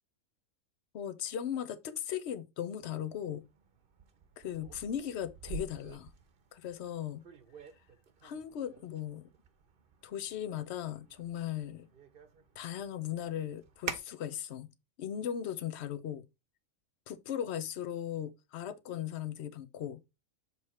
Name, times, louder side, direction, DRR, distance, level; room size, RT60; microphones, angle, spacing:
voice 1, 0.9-3.4 4.4-6.1 6.5-7.2 8.2-9.3 10.0-11.9 12.6-14.7 15.0-16.3 17.1-20.0, left 10 dB, 55° left, 0.9 m, -38 dB
sound 1, 2.8-14.0, right 5 dB, 45° right, 0.9 m, -48 dB
7.1 x 3.2 x 4.2 m
omnidirectional pair, 1.5 m